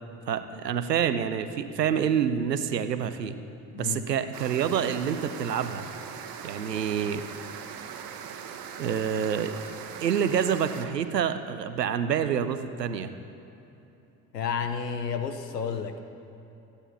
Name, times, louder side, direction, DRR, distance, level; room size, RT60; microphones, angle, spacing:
voice 1, 0.3-3.3 3.8-5.9 6.4-7.2 8.8-9.5 10.0-13.1, right 8 dB, 85° right, 11 dB, 0.6 m, -27 dB
voice 2, 3.7-4.1 14.3-16.0, left 6 dB, 90° left, 8 dB, 0.7 m, -31 dB
sound 1, 4.3-10.9, right 7 dB, 45° right, 1.1 m, -40 dB
14.5 x 9.9 x 5.5 m, 3.0 s
figure-of-eight pair, 50°, 48 cm